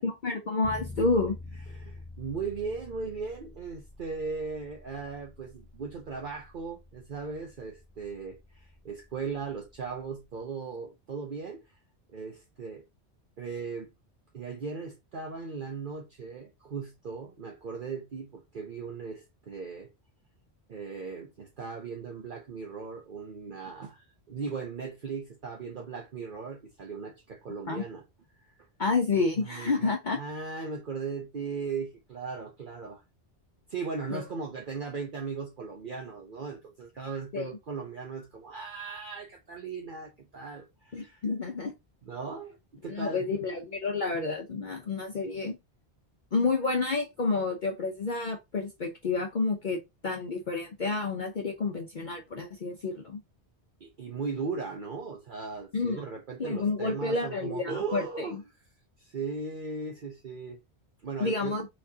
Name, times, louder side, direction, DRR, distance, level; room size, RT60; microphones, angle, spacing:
voice 1, 0.0-1.4 27.7-27.8 28.8-30.2 34.1-34.2 37.3-37.5 40.9-41.7 42.9-45.6 46.3-53.2 55.7-56.0 56.4-58.4 61.2-61.7, left 3 dB, 50° left, 0.8 m, -29 dB
Bass guitar, 0.6-10.5, left 2 dB, 15° left, 0.5 m, -48 dB
voice 2, 1.7-11.6 12.1-12.8 13.4-13.9 14.3-19.9 20.7-28.0 28.4-28.5 29.4-33.0 33.7-41.2 42.0-43.3 53.8-58.4 59.0-60.6 61.0-61.6, right 5 dB, 50° right, 0.9 m, -38 dB
4.5 x 4.2 x 2.8 m
omnidirectional pair, 1.1 m